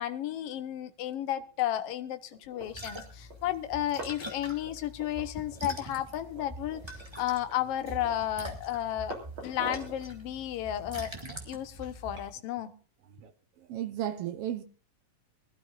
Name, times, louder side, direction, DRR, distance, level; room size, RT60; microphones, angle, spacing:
voice 1, 0.0-11.1 11.5-12.7, left 12 dB, 70° left, 1.4 m, -33 dB
sound 1, 2.3-2.7 3.3-3.4 3.7-4.3 4.6-5.7 5.9-6.0 6.3-7.1 7.4-8.3 8.7-10.0 10.5-12.3, right 2 dB, 40° right, 3.7 m, -44 dB
sound 2, 2.6-12.3, right 1 dB, 15° right, 1.1 m, -44 dB
voice 2, 13.6-14.6, right 11 dB, 80° right, 1.3 m, -34 dB
22.5 x 12.5 x 2.5 m
omnidirectional pair, 3.9 m